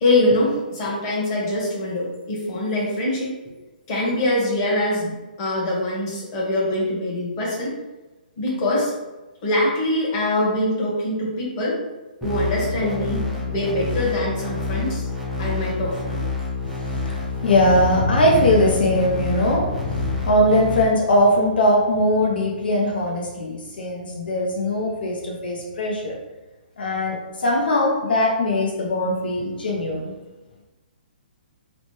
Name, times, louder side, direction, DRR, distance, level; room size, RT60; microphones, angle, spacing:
voice 1, 0.0-3.3 3.9-5.1 5.4-7.7 8.4-8.9 9.4-11.8 12.2-13.2 13.5-15.0 15.4-16.2, left 1 dB, 30° left, -5 dB, 1.0 m, -23 dB
sound 1, 12.2-20.8, left 3 dB, ahead, 0.4 m, -28 dB
voice 2, 16.9-26.2 26.8-30.1, left 1 dB, 80° left, 0 dB, 0.5 m, -20 dB
2.9 x 2.0 x 3.1 m, 1.1 s
hypercardioid pair, 155°, 5 cm